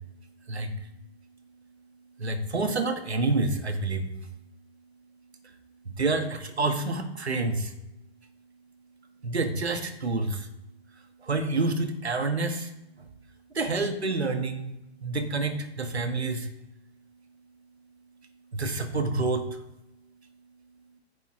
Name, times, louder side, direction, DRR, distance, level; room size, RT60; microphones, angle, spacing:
voice 1, 2.2-4.1 5.9-7.7 9.2-10.5 11.2-12.7 13.5-14.7 15.0-16.5 18.5-19.6, right 3 dB, 80° right, 7 dB, 1.6 m, -28 dB
9.9 x 6.9 x 3.7 m, 0.92 s
figure-of-eight pair, 115°, 32 cm